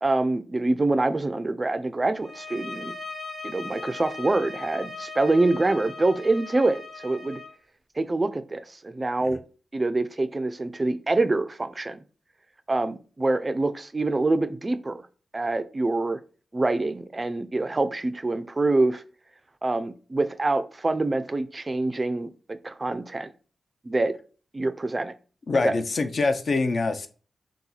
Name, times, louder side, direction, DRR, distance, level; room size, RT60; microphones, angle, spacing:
voice 1, 0.0-2.9 3.4-7.4 8.0-9.4 9.7-12.0 12.7-15.1 15.3-16.2 16.5-19.0 19.6-23.3 23.8-24.1 24.5-25.1 25.6-25.7, right 2 dB, 30° right, 11 dB, 0.3 m, -25 dB
sound 1, 2.2-7.5, left 3 dB, 20° left, 0.9 m, -39 dB
voice 2, 25.5-27.1, left 3 dB, 60° left, 8 dB, 0.4 m, -24 dB
2.7 x 2.3 x 3.8 m, 0.38 s
cardioid pair, 60°, 0 cm